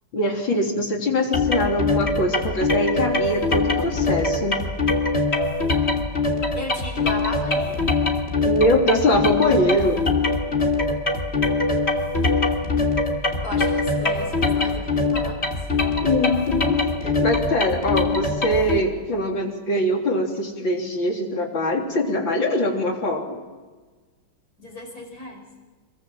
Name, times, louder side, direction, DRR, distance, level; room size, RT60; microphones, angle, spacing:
voice 1, 0.1-4.6 8.4-10.1 16.0-23.4, left 1 dB, 80° left, 2 dB, 4.2 m, -23 dB
sound 1, 1.3-18.8, left 3 dB, 35° left, 2.9 m, -23 dB
voice 2, 6.6-7.9 13.4-15.5 24.6-25.4, left 1 dB, 50° left, 1 dB, 6.4 m, -35 dB
27.0 x 22.5 x 7.5 m, 1.3 s
omnidirectional pair, 2.1 m